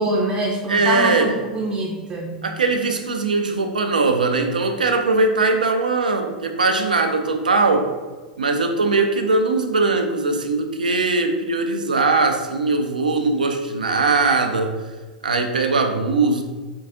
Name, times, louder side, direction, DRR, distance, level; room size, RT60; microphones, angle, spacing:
voice 1, 0.0-2.4, right 1 dB, 25° right, -2 dB, 0.6 m, -24 dB
voice 2, 0.7-1.3 2.4-7.9 8.4-14.7 15.2-16.5, right 3 dB, 80° right, 5 dB, 0.4 m, -20 dB
4.4 x 2.3 x 2.6 m, 1.3 s
figure-of-eight pair, 90°, 4 cm